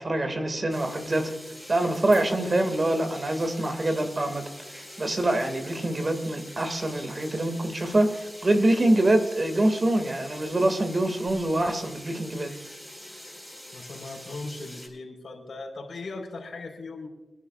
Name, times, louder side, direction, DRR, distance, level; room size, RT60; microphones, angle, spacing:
voice 1, 0.0-1.3 1.7-4.4 4.7-12.5, right 1 dB, 40° right, 6 dB, 2.1 m, -25 dB
sound 1, 0.7-14.9, equal, 5° right, 4.7 m, -44 dB
voice 2, 13.7-17.1, left 3 dB, 75° left, 1 dB, 4.2 m, -38 dB
25.5 x 11.5 x 2.4 m, 1.1 s
wide cardioid pair, 90°, 0 cm